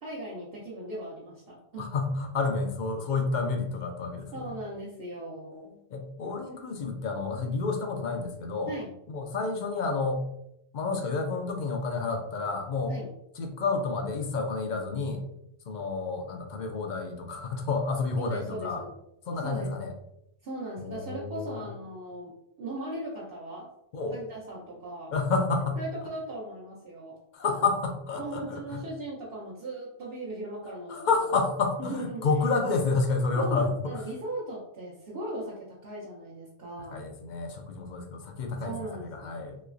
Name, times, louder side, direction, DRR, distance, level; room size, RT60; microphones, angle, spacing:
voice 1, 0.0-1.9 4.3-5.8 6.2-6.4 8.7-8.9 12.9-13.1 18.2-18.9 19.4-19.7 20.4-23.7 24.1-25.1 25.8-27.2 28.2-31.1 31.8-32.3 33.3-37.0 38.6-39.3, right 1 dB, 65° right, -6 dB, 0.9 m, -38 dB
voice 2, 1.8-4.5 5.9-8.7 9.1-10.3 10.7-13.0 13.4-15.2 15.7-18.8 19.3-19.9 20.8-21.7 23.9-24.2 25.1-25.8 27.3-28.8 30.9-34.0 36.9-39.6, left 4 dB, 55° left, 3 dB, 0.5 m, -30 dB
3.1 x 3.0 x 2.4 m, 0.79 s
omnidirectional pair, 1.1 m